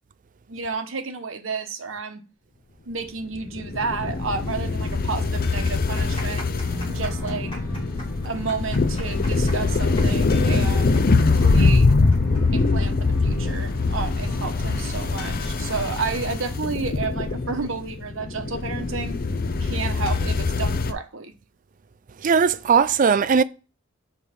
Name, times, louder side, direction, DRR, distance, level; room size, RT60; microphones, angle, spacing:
voice 1, 0.5-2.2 2.9-6.4 6.9-7.5 8.2-11.0 11.3-11.9 12.5-19.2 19.6-21.3, right 4 dB, 70° right, 1.0 m, -31 dB
sound 1, 3.3-20.9, left 3 dB, 45° left, 0.6 m, -23 dB
sound 2, 5.7-12.9 13.2-13.3 14.0-14.3, equal, 25° left, 3.2 m, -41 dB
sound 3, 6.6-16.7, right 1 dB, 10° right, 2.5 m, -40 dB
voice 2, 22.2-23.4, right 6 dB, 40° right, 0.4 m, -18 dB
5.4 x 4.5 x 6.0 m
head